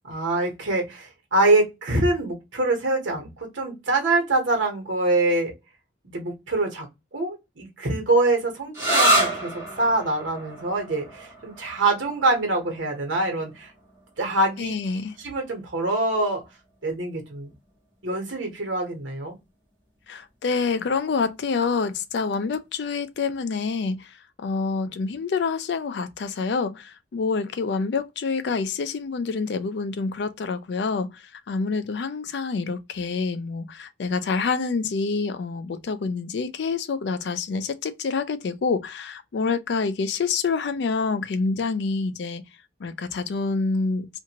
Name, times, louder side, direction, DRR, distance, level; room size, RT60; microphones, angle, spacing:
voice 1, 0.1-5.5 6.0-6.9 7.1-13.7 14.2-14.7 15.2-16.4 16.8-17.5 18.0-19.3, right 2 dB, 90° right, 1.1 m, -24 dB
sound 1, 8.7-16.1, right 1 dB, 15° right, 1.3 m, -28 dB
voice 2, 14.6-15.2 20.1-42.4 42.8-44.1, left 4 dB, 65° left, 0.4 m, -27 dB
2.5 x 2.5 x 2.9 m
head